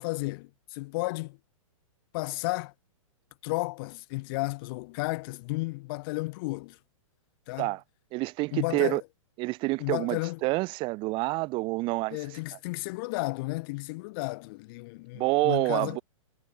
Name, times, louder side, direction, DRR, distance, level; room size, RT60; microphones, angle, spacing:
voice 1, 0.0-1.4 2.1-2.7 3.4-6.8 7.5-7.7 8.5-9.0 9.8-10.4 12.1-16.0, left 24 dB, 40° left, 2.7 m, -33 dB
voice 2, 8.1-9.0 9.4-12.2 15.1-16.0, right 22 dB, 30° right, 1.4 m, -28 dB
hypercardioid pair, 145°, 17 cm